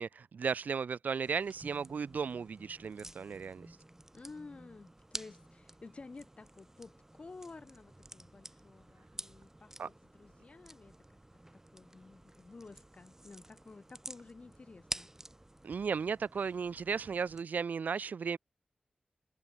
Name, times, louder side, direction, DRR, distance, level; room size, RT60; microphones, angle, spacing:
voice 1, 0.0-3.8 9.8-9.9 15.6-18.4, right 6 dB, 80° right, 0.5 m, -35 dB
sound 1, 1.3-17.4, right 1 dB, 15° right, 2.7 m, -50 dB
voice 2, 4.1-10.9 11.7-15.1, left 3 dB, 45° left, 1.3 m, -52 dB
wide cardioid pair, 95°, 3 cm